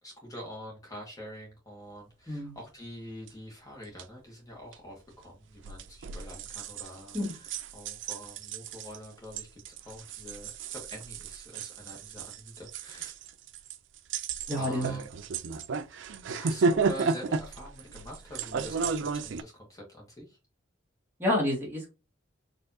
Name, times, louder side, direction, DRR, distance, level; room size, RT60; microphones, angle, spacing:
voice 1, 0.0-13.2 14.6-15.1 16.3-20.4, equal, 15° left, -2 dB, 1.1 m, -45 dB
sound 1, 3.3-3.4 3.8-4.0 4.7-4.8 5.6-19.4, right 4 dB, 70° right, 0.4 m, -33 dB
voice 2, 14.5-15.0 21.2-21.9, left 1 dB, 10° right, -2 dB, 1.4 m, -29 dB
4.3 x 2.7 x 2.7 m, 0.29 s
head